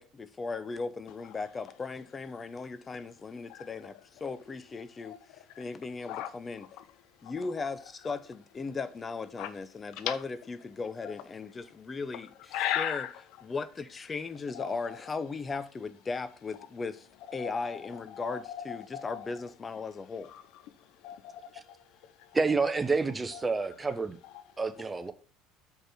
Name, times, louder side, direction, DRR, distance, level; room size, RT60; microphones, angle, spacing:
voice 1, 0.0-3.9 4.2-6.7 7.2-13.1 13.4-20.3, left 4 dB, 30° left, 0.7 m, -37 dB
voice 2, 3.4-3.9 4.3-4.4 4.8-5.7 6.1-6.3 6.6-7.7 8.0-8.2 9.4-9.5 9.9-10.2 11.0-11.1 12.5-13.2 14.5-15.2 17.3-19.4 20.2-22.7 23.3-23.9 24.2-24.9, left 11 dB, 65° left, 0.7 m, -39 dB
voice 3, 22.3-24.2 24.6-25.1, right 4 dB, 20° right, 0.9 m, -28 dB
6.4 x 5.1 x 5.9 m
hypercardioid pair, 65°, 0 cm